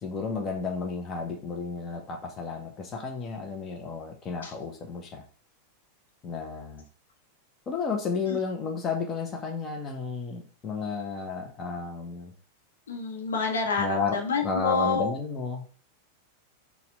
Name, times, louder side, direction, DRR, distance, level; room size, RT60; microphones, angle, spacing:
voice 1, 0.0-5.2 6.2-6.8 7.7-12.3 13.8-15.7, left 5 dB, 25° left, 2 dB, 0.7 m, -32 dB
voice 2, 12.9-15.1, left 4 dB, 65° left, 2 dB, 0.9 m, -28 dB
4.2 x 2.3 x 3.9 m, 0.42 s
figure-of-eight pair, 90°, 0 cm